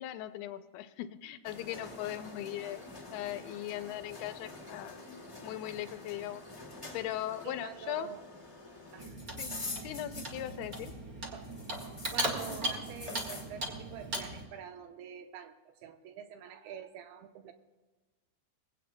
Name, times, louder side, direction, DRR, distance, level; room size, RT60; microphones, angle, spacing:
voice 1, 0.0-2.8 3.1-6.4 6.9-8.1 9.4-9.5 9.8-10.9, left 13 dB, 80° left, 10 dB, 2.5 m, -39 dB
sound 1, 1.4-11.1 11.4-13.5, left 3 dB, 15° left, 0.9 m, -46 dB
voice 2, 7.4-8.2 8.9-9.2 11.3-11.5 12.1-17.5, right 9 dB, 80° right, 7 dB, 2.7 m, -46 dB
Clock, 9.0-14.5, right 2 dB, 55° right, 0.9 m, -38 dB
21.5 x 16.0 x 2.2 m, 1.3 s
omnidirectional pair, 4.6 m